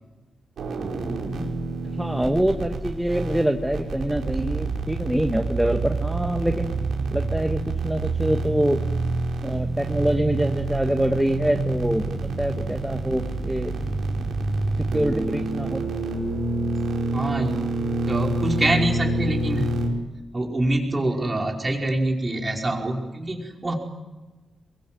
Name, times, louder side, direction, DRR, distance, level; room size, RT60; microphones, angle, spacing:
sound 1, 0.6-19.9, right 2 dB, 80° right, 5.3 m, -27 dB
voice 1, 2.0-6.8 7.1-8.8 9.4-13.7 14.8-15.8, right 1 dB, 5° right, 4 dB, 1.5 m, -25 dB
voice 2, 17.1-17.7 18.1-19.7 20.3-23.7, right 1 dB, 25° right, 1 dB, 5.1 m, -25 dB
28.0 x 23.5 x 7.7 m, 1.2 s
wide cardioid pair, 140°, 0 cm